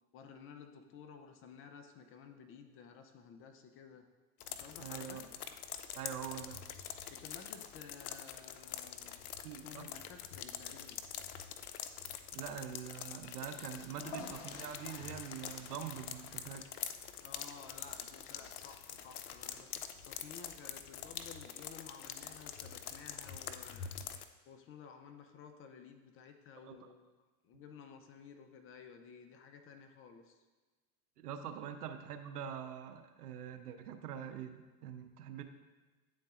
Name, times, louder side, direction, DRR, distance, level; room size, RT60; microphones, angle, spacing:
voice 1, 0.1-4.1 4.5-5.2 7.1-9.2 9.6-11.0 17.2-23.9 24.5-27.1 27.4-30.4, left 6 dB, 30° left, 6 dB, 0.5 m, -54 dB
sound 1, 4.4-24.2, left 9 dB, 75° left, 0.6 m, -45 dB
voice 2, 4.8-5.2 5.9-6.6 9.4-9.9 12.3-16.6 26.6-26.9 31.2-35.4, right 9 dB, 80° right, 7 dB, 0.7 m, -44 dB
Pulling a WC chain, 13.8-20.6, left 3 dB, 50° left, 0.9 m, -54 dB
9.8 x 3.9 x 2.5 m, 1.2 s
hypercardioid pair, 100°, 45 cm